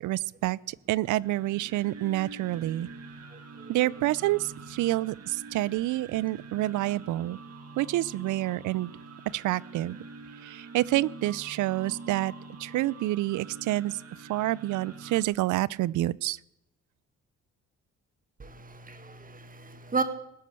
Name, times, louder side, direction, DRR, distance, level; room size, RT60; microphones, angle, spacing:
voice 1, 0.0-2.9 3.7-7.4 7.8-8.9 9.3-10.0 10.4-12.3 12.6-14.0 14.3-16.4, right 16 dB, 80° right, 24 dB, 0.5 m, -28 dB
sound 1, 1.0-15.2, right 3 dB, 55° right, 2.1 m, -45 dB
voice 2, 3.3-3.8 18.4-20.0, right 4 dB, 30° right, 10 dB, 1.8 m, -34 dB
19.0 x 8.4 x 7.0 m, 0.84 s
cardioid pair, 90°, 30 cm